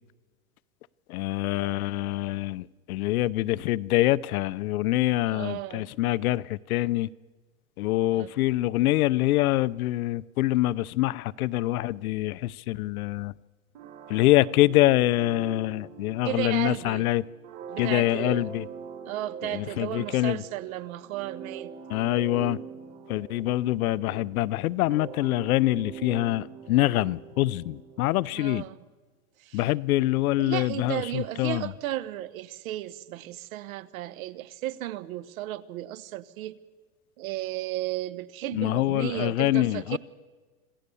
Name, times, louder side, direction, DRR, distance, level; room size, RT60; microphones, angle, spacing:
voice 1, 1.1-7.1 7.8-13.3 14.1-17.2 17.8-18.7 19.5-20.4 21.9-22.6 23.1-28.6 29.5-31.6 38.5-40.0, left 16 dB, 75° left, 0.6 m, -25 dB
voice 2, 5.3-5.9 8.1-8.3 16.2-17.1 17.7-18.4 19.0-21.7 28.3-28.8 29.4-29.7 30.4-36.6 37.2-40.0, right 14 dB, 70° right, 1.1 m, -34 dB
sound 1, 13.7-28.3, right 7 dB, 35° right, 2.3 m, -43 dB
26.5 x 15.5 x 6.9 m
supercardioid pair, 160°, 43 cm